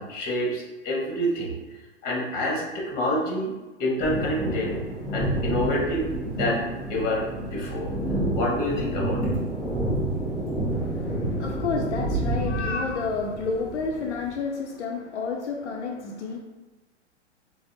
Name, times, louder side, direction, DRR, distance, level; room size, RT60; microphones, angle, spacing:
voice 1, 0.0-1.5 2.0-3.5 3.8-4.7 5.1-7.9 8.3-9.3, equal, 25° left, -2 dB, 1.0 m, -27 dB
sound 1, 4.0-14.3, right 1 dB, ahead, 0.4 m, -29 dB
voice 2, 10.7-16.4, left 4 dB, 70° left, 0 dB, 0.5 m, -30 dB
5.1 x 2.0 x 2.6 m, 1.1 s
figure-of-eight pair, 110°, 36 cm